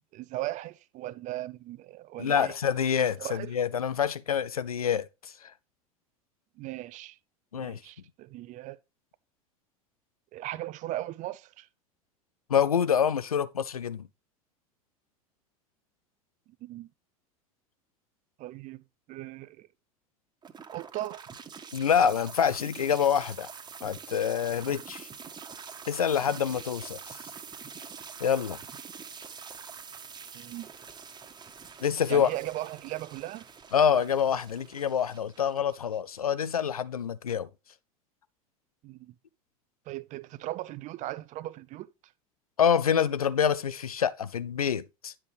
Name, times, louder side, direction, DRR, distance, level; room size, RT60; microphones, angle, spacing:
voice 1, 0.1-2.6 3.2-3.5 6.6-7.2 7.5-8.8 10.3-11.7 16.6-16.9 18.4-18.8 19.1-19.7 20.7-21.2 30.3-30.7 32.1-33.4 38.8-39.1 39.9-41.9, right 15 dB, 45° right, 0.6 m, -38 dB
voice 2, 2.2-5.5 7.5-7.8 12.5-14.0 21.7-23.5 23.8-25.1 25.9-27.2 28.2-28.6 31.8-32.3 33.7-37.5 42.6-45.1, left 8 dB, 90° left, 0.5 m, -26 dB
sound 1, 20.4-36.4, right 6 dB, 25° right, 1.4 m, -45 dB
9.8 x 5.9 x 3.4 m
hypercardioid pair, 80°, 18 cm